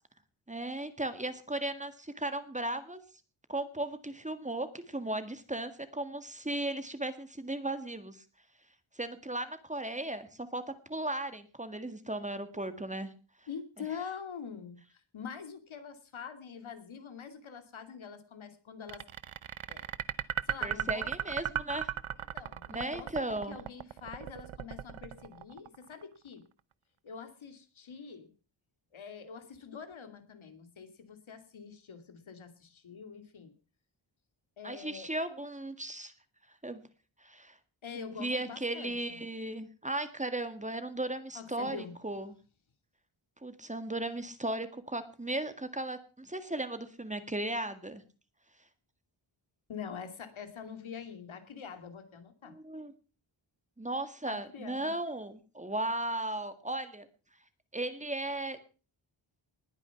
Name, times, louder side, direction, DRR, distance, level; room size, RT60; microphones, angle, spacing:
voice 1, 0.5-3.0 3.5-8.2 9.0-10.6 10.9-13.1 20.6-21.9 22.7-23.6 34.6-36.1 36.6-36.8 37.2-37.6 37.9-42.3 43.4-48.0 52.5-52.9 53.8-57.1 57.7-58.6, right 1 dB, 15° right, 10 dB, 1.8 m, -36 dB
voice 2, 13.5-19.1 19.7-19.9 20.5-21.1 22.3-26.5 27.0-28.3 28.9-33.5 34.6-35.1 37.8-39.2 41.3-41.9 49.7-52.5 54.3-54.9, left 6 dB, 80° left, 8 dB, 2.7 m, -45 dB
sound 1, 18.9-26.0, right 10 dB, 90° right, 0.9 m, -36 dB
20.0 x 9.7 x 5.9 m, 0.37 s
wide cardioid pair, 135°, 47 cm